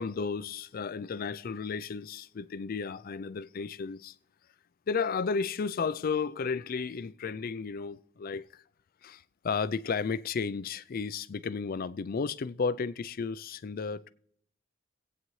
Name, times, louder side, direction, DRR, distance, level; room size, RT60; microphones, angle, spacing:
voice 1, 0.0-4.2 4.9-8.5 9.0-14.1, left 5 dB, 50° left, 0.4 m, -33 dB
24.0 x 8.7 x 3.2 m
head